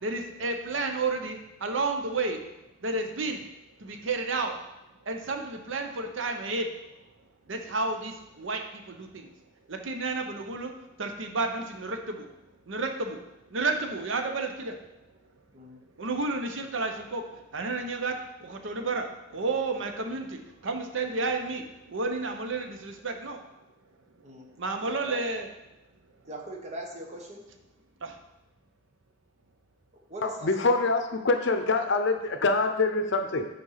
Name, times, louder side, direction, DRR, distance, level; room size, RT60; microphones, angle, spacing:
voice 1, 0.0-2.4 2.8-3.4 3.8-4.5 5.1-6.7 7.5-9.3 9.7-10.7 11.0-12.3 12.7-13.2 13.5-14.8 16.0-23.4 24.6-25.5 28.0-28.2, right 3 dB, 65° right, 5 dB, 0.8 m, -31 dB
voice 2, 15.5-15.8 24.2-24.5 24.8-25.2 26.3-27.4 30.1-30.7, right 1 dB, 35° right, 1 dB, 1.1 m, -41 dB
voice 3, 30.2-33.5, left 3 dB, 60° left, 7 dB, 0.7 m, -25 dB
6.4 x 4.4 x 5.7 m, 0.96 s
head